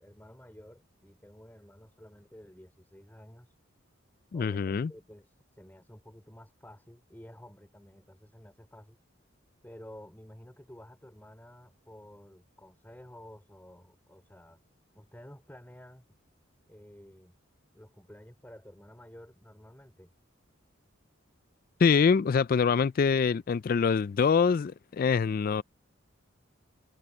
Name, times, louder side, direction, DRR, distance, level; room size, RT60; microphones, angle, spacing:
voice 1, 0.0-3.5 4.3-9.0 9.6-14.6 14.9-16.0 16.7-17.4 17.7-20.1, equal, 10° left, 3.1 m, -52 dB
voice 2, 4.3-4.9 21.8-25.6, left 6 dB, 45° left, 0.3 m, -24 dB
head